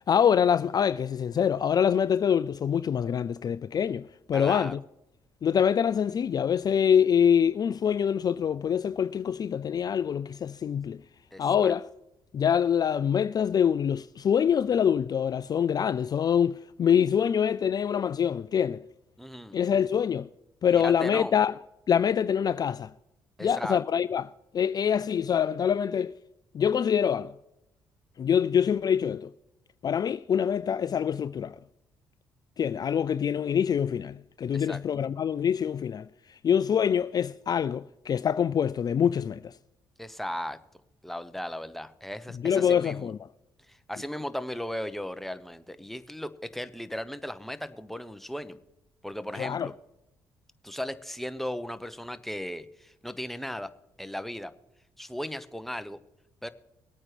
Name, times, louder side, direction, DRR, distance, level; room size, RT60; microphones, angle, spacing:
voice 1, 0.1-4.8 5.4-11.0 11.4-11.9 12.3-18.8 19.5-20.3 20.6-21.5 21.9-22.9 23.4-26.1 26.5-27.3 28.2-29.3 29.8-31.6 32.6-36.1 36.4-39.5 42.4-43.2 49.3-49.7, left 8 dB, 45° left, 0.3 m, -25 dB
voice 2, 4.3-4.8 11.3-11.7 19.2-19.6 20.7-21.3 23.4-23.8 34.5-34.8 40.0-40.6 41.0-43.1 43.7-48.6 49.0-49.7 50.6-53.7 54.0-54.5 55.0-56.0 56.4-56.5, equal, ahead, 0.9 m, -36 dB
21.5 x 8.8 x 3.3 m
hypercardioid pair, 50°, 9 cm